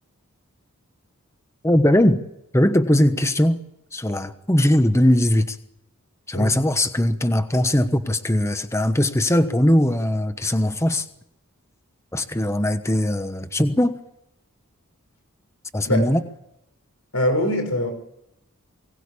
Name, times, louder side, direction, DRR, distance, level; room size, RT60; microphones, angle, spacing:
voice 1, 1.6-2.2 2.5-3.6 3.9-5.6 6.3-11.1 12.1-13.9 15.7-16.2, left 1 dB, 15° left, 1.1 m, -20 dB
voice 2, 17.1-17.9, left 1 dB, 85° left, 5.4 m, -23 dB
23.5 x 18.5 x 8.5 m
head